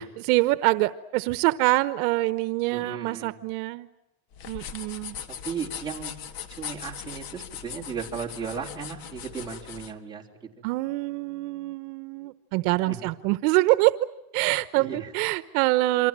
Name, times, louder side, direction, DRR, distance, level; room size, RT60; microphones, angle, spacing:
voice 1, 0.0-3.9 4.5-5.1 10.6-13.9 14.3-16.1, right 19 dB, 75° right, 14 dB, 1.1 m, -25 dB
voice 2, 2.7-3.4 5.3-6.1 6.5-10.6 12.9-13.0 14.8-15.1, right 6 dB, 10° right, -2 dB, 3.9 m, -36 dB
sound 1, 4.3-9.9, left 8 dB, 50° left, 1.8 m, -39 dB
28.0 x 25.0 x 7.5 m, 0.90 s
cardioid pair, 155°, 45 cm